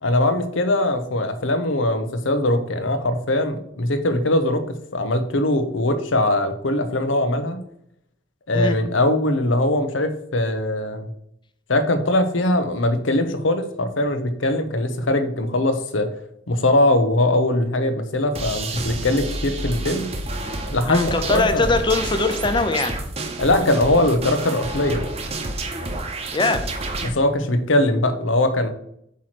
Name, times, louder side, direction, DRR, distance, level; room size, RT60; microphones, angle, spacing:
voice 1, 0.0-7.6 8.5-11.1 11.7-16.1 16.5-20.1 20.7-21.6 23.4-25.1 27.0-28.7, left 1 dB, 90° left, 8 dB, 1.0 m, -21 dB
sound 1, 18.3-27.1, right 2 dB, 35° right, 0.9 m, -29 dB
voice 2, 20.9-22.9 26.3-26.6, left 3 dB, 25° left, 8 dB, 0.7 m, -21 dB
8.3 x 3.2 x 5.9 m, 0.72 s
head